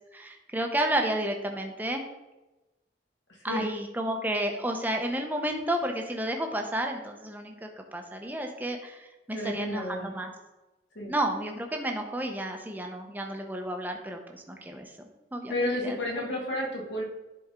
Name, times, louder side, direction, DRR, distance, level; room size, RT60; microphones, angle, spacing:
voice 1, 0.1-2.0 3.4-10.3 11.1-14.9 15.3-16.0 16.3-16.4, right 1 dB, 10° right, 3 dB, 0.8 m, -31 dB
voice 2, 9.3-10.1 11.0-11.2 15.5-17.0, left 1 dB, 75° left, -1 dB, 2.0 m, -31 dB
10.5 x 4.3 x 3.7 m, 1.0 s
head